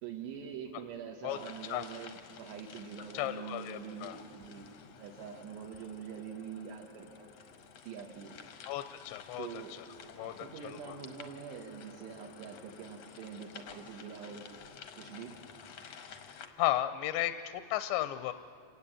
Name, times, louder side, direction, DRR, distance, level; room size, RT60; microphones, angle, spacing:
voice 1, 0.0-4.7 5.0-7.3 7.9-8.3 9.4-9.8 10.2-14.5 15.0-15.3, right 7 dB, 75° right, 1 dB, 3.5 m, -44 dB
sound 1, 1.3-16.5, left 6 dB, 65° left, 1.6 m, -52 dB
voice 2, 3.1-4.2 8.7-9.6 10.2-11.0 16.6-18.3, left 14 dB, 85° left, 10 dB, 2.9 m, -34 dB
27.0 x 18.0 x 8.7 m, 2.5 s
omnidirectional pair, 5.2 m